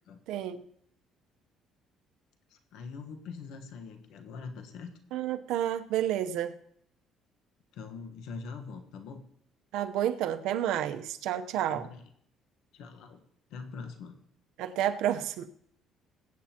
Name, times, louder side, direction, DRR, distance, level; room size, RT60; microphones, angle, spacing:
voice 1, 0.3-0.6 5.1-6.5 9.7-11.9 14.6-15.5, right 11 dB, 80° right, 9 dB, 0.8 m, -30 dB
voice 2, 2.5-4.9 7.7-9.2 11.7-12.0 12.7-13.2 13.5-14.2, left 5 dB, 80° left, 6 dB, 1.3 m, -43 dB
23.0 x 8.5 x 2.9 m, 0.68 s
cardioid pair, 150°, 0 cm